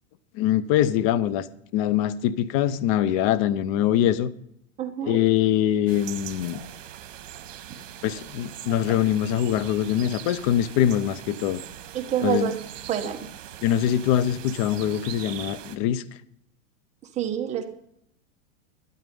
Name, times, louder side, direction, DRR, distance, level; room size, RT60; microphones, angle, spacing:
voice 1, 0.3-1.5 1.7-4.3 5.0-6.6 8.0-11.6 12.2-12.5 13.6-16.0, left 11 dB, 30° left, 0.5 m, -23 dB
voice 2, 4.8-5.2 11.9-12.6 12.9-13.2 17.2-17.6, right 9 dB, 20° right, 1.2 m, -26 dB
sound 1, 5.9-15.8, right 11 dB, 75° right, 1.4 m, -41 dB
13.0 x 9.4 x 5.4 m
supercardioid pair, 155°, 38 cm